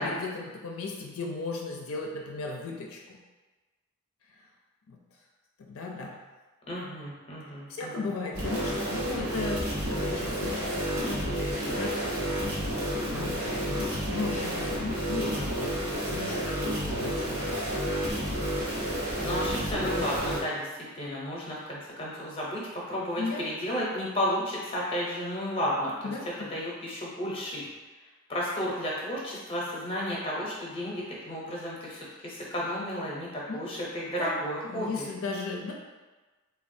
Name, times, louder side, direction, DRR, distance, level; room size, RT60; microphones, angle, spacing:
voice 1, 0.0-3.2 4.9-5.0 5.6-6.2 7.7-15.8 16.1-17.5 23.2-23.5 26.0-26.5 33.5-33.8 34.2-35.7, left 3 dB, 85° left, -1 dB, 0.4 m, -36 dB
voice 2, 6.7-8.1 19.2-20.7 20.9-27.6 28.3-35.1, equal, 25° left, -5 dB, 0.6 m, -33 dB
sound 1, 8.3-20.4, equal, 90° right, 0.9 m, -30 dB
3.2 x 2.2 x 2.6 m, 1.2 s
head